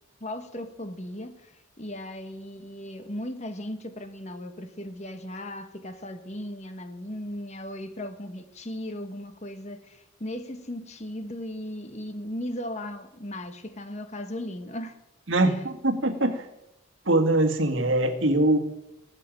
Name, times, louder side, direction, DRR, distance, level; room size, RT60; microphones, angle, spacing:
voice 1, 0.2-15.0 15.4-15.7, left 1 dB, 30° left, 8 dB, 1.2 m, -37 dB
voice 2, 15.3-16.4 17.1-18.6, right 2 dB, 60° right, 5 dB, 1.8 m, -22 dB
18.5 x 6.7 x 8.9 m, 0.88 s
head